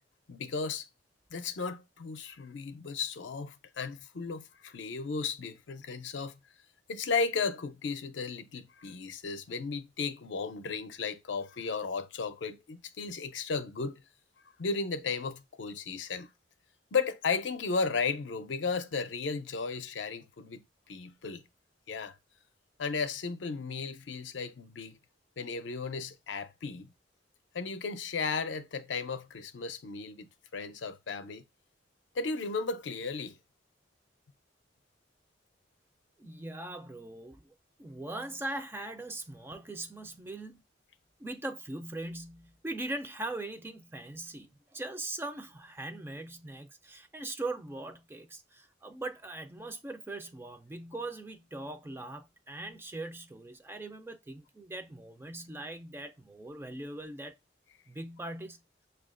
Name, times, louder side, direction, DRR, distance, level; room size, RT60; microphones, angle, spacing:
voice 1, 0.3-0.9 1.3-6.4 6.9-14.0 14.6-16.3 16.9-21.4 21.9-22.2 22.8-25.0 25.4-26.9 27.5-31.4 32.1-33.4, left 4 dB, 70° left, 0.5 m, -35 dB
voice 2, 36.2-37.5 37.8-40.6 41.2-57.4 57.9-58.6, right 2 dB, 15° right, 0.3 m, -40 dB
6.4 x 2.3 x 2.4 m
head